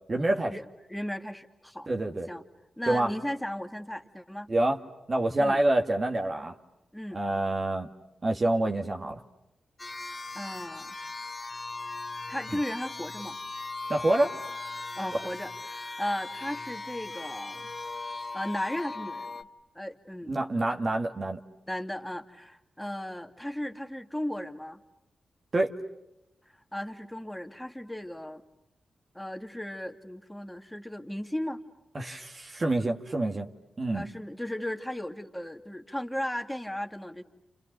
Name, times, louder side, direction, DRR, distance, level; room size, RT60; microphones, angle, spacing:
voice 1, 0.1-0.6 1.9-2.3 2.9-3.1 4.5-4.8 5.1-6.5 7.1-7.9 8.2-9.2 13.9-14.3 15.1-15.2 20.3-21.4 25.5-25.8 31.9-33.5 33.8-34.1, right 1 dB, 40° right, 3 dB, 2.1 m, -27 dB
voice 2, 0.9-1.9 2.3-2.4 2.8-4.5 5.4-5.6 6.9-7.2 10.3-11.0 12.3-13.4 15.0-17.7 18.3-19.3 19.7-20.4 21.7-24.8 26.7-28.4 29.1-31.6 33.9-37.2, left 1 dB, 5° left, 5 dB, 2.4 m, -36 dB
sound 1, 9.8-19.4, left 3 dB, 30° left, 1.7 m, -38 dB
30.0 x 29.5 x 6.8 m, 0.89 s
cardioid pair, 65°, 0 cm